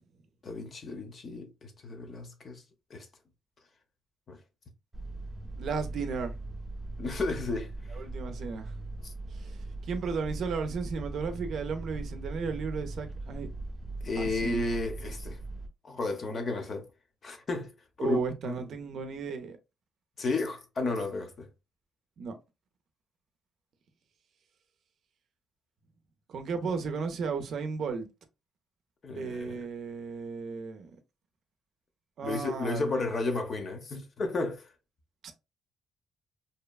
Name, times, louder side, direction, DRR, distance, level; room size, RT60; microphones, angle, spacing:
voice 1, 0.4-2.6 2.9-3.1 4.3-4.4 7.0-7.7 14.0-15.4 15.8-16.9 17.2-17.7 18.0-18.2 18.4-18.6 20.2-21.5 29.0-29.6 32.2-34.7, left 3 dB, 45° left, 0.7 m, -33 dB
sound 1, 4.9-15.7, right 2 dB, 15° right, 0.7 m, -40 dB
voice 2, 5.5-6.3 8.0-8.7 9.3-9.6 9.8-13.5 14.2-14.6 18.0-19.6 22.2-22.4 26.3-28.1 29.1-30.9 32.2-33.0 35.2-35.3, right 5 dB, 65° right, 0.5 m, -34 dB
2.7 x 2.2 x 2.3 m
cardioid pair, 90°, 0 cm